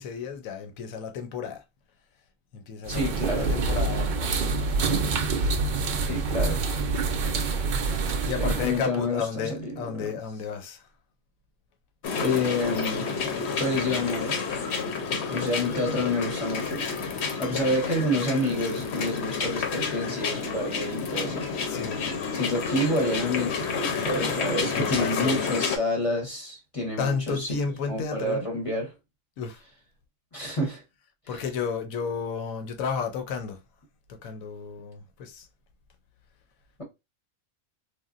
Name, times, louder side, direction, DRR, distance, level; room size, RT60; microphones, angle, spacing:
voice 1, 0.0-1.6 2.5-4.3 5.9-6.2 8.2-10.9 21.7-22.1 24.7-25.4 27.0-28.5 29.4-29.6 31.3-33.6 34.1-35.5, left 6 dB, 90° left, 1.1 m, -32 dB
voice 2, 2.9-3.5 6.0-6.6 8.2-10.1 12.2-13.1 13.6-14.6 15.3-16.9 17.4-21.8 22.3-27.6 27.9-28.9 30.3-30.8 31.3-31.4, left 1 dB, 30° left, 0.8 m, -29 dB
sound 1, 2.9-8.8, right 4 dB, 65° right, 0.5 m, -26 dB
sound 2, 12.0-25.8, left 5 dB, 60° left, 0.8 m, -30 dB
3.4 x 2.3 x 2.4 m
omnidirectional pair, 1.4 m